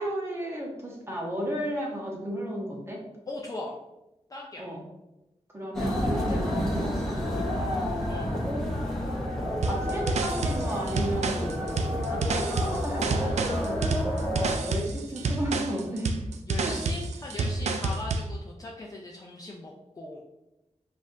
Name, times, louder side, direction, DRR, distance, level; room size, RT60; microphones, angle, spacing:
voice 1, 0.0-3.0 4.6-4.8 5.5-8.0 8.4-8.6 9.7-16.2 16.5-16.8, right 1 dB, 20° right, -3 dB, 1.1 m, -34 dB
voice 2, 3.3-3.8 4.3-4.7 8.1-8.3 16.5-20.2, left 2 dB, 30° left, -2 dB, 0.4 m, -39 dB
sound 1, 5.7-14.6, equal, 5° left, 0.9 m, -30 dB
sound 2, 9.6-18.3, right 3 dB, 80° right, 0.4 m, -29 dB
5.2 x 2.5 x 2.7 m, 0.96 s
wide cardioid pair, 110°, 11 cm